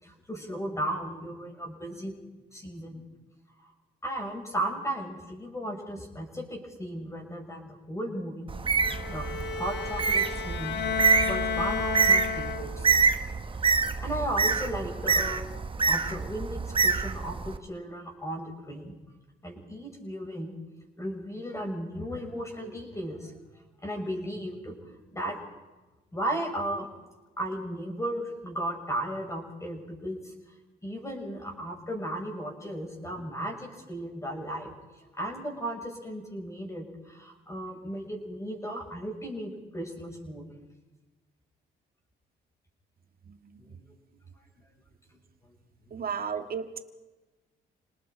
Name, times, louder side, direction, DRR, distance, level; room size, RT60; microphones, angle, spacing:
voice 1, 0.0-2.2 2.5-3.0 3.6-3.7 4.0-8.5 9.1-12.9 13.5-13.6 14.0-19.0 19.4-20.5 21.0-23.3 23.8-24.8 25.1-25.4 26.1-26.9 27.4-30.3 30.8-34.7 35.2-40.5 43.6-43.8 45.4-45.5 45.9-46.0, right 1 dB, 15° left, 1 dB, 6.8 m, -35 dB
Bird, 8.5-17.6, right 5 dB, 25° right, 1.1 m, -26 dB
Bowed string instrument, 8.8-13.0, left 6 dB, 60° left, 1.5 m, -32 dB
voice 2, 43.2-43.8 45.9-46.8, right 6 dB, 50° right, 8 dB, 1.9 m, -35 dB
29.5 x 19.5 x 5.2 m, 1.2 s
cardioid pair, 90°, 20 cm